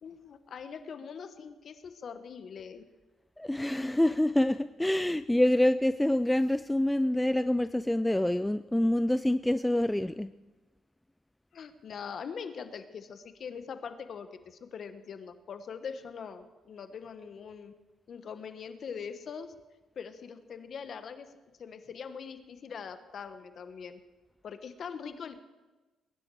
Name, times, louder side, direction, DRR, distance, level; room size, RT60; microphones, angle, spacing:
voice 1, 0.0-2.8 11.5-17.7 18.1-19.5 19.9-21.3 21.6-24.0 24.4-25.4, left 6 dB, 55° left, 10 dB, 1.2 m, -42 dB
voice 2, 3.4-10.3, left 1 dB, 10° left, 13 dB, 0.4 m, -26 dB
22.0 x 10.5 x 4.8 m, 1.2 s
cardioid pair, 90°, 0 cm